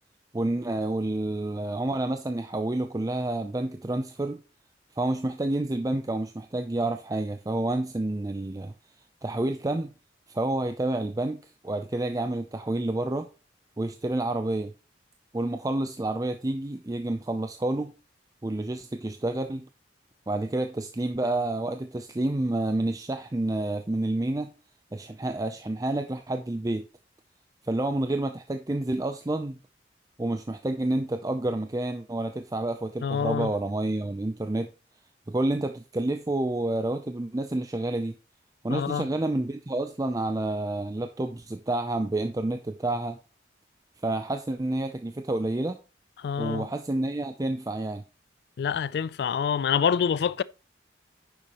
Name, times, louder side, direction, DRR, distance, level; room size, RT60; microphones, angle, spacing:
voice 1, 0.3-4.4 5.0-8.7 9.2-9.9 10.3-13.3 13.8-14.7 15.3-17.9 18.4-19.7 20.3-24.5 24.9-26.8 27.6-29.6 30.2-34.7 35.3-38.2 38.6-43.2 44.0-45.8 46.4-48.0, right 2 dB, 20° right, 0.5 m, -29 dB
voice 2, 33.0-33.5 38.7-39.1 46.2-46.7 48.6-50.4, left 7 dB, 60° left, 0.3 m, -26 dB
9.8 x 7.0 x 3.0 m
head